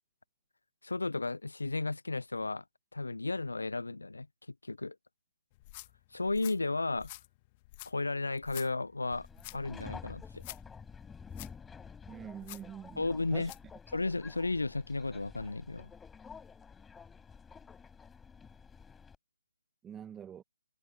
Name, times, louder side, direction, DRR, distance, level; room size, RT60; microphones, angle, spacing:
voice 1, 0.8-2.6 2.9-4.3 4.6-5.0 6.1-7.1 7.9-9.3 9.5-10.4 13.0-13.5 13.9-15.9, left 3 dB, 75° left, 0.4 m, -33 dB
sound 1, 5.5-13.7, left 20 dB, 30° left, 1.6 m, -51 dB
Subway metro underground, 9.1-19.2, left 6 dB, 10° left, 5.3 m, -50 dB
voice 2, 12.1-13.5 19.8-20.4, right 8 dB, 10° right, 1.5 m, -45 dB
figure-of-eight pair, 140°, 0 cm